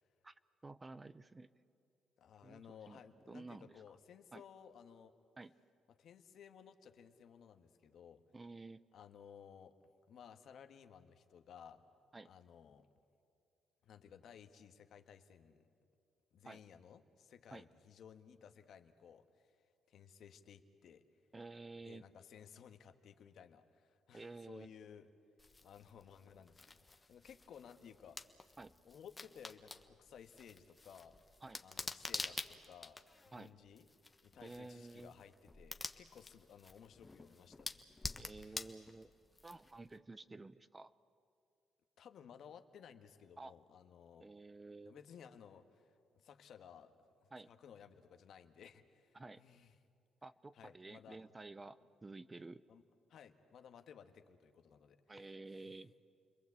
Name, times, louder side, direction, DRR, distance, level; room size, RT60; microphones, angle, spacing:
voice 1, 0.6-1.5 2.4-2.6 2.9-3.0 3.3-3.8 4.3-4.4 5.4-5.5 8.3-8.8 12.1-12.3 16.4-16.6 17.5-17.7 21.3-22.0 24.1-24.7 28.6-28.7 31.4-31.6 33.3-33.5 34.4-35.1 38.2-39.1 39.4-40.9 43.4-43.5 44.2-45.0 47.3-47.5 49.1-49.4 50.2-52.6 55.1-55.9, right 3 dB, 20° right, 15 dB, 0.7 m, -51 dB
voice 2, 2.2-5.1 5.9-8.2 8.9-9.7 10.1-11.8 12.2-12.9 13.8-15.7 16.3-19.5 19.9-21.0 21.8-25.1 25.6-26.8 27.1-28.2 28.8-31.2 31.6-33.0 33.3-33.9 34.2-38.6 42.0-44.3 44.8-45.9 46.1-47.0 47.2-49.7 50.5-51.2 52.7-52.8 53.1-55.7, left 8 dB, 70° left, 8 dB, 1.5 m, -58 dB
sound 1, 25.4-39.9, left 3 dB, 20° left, 1.2 m, -49 dB
30.0 x 21.5 x 8.4 m, 2.4 s
cardioid pair, 90°, 0 cm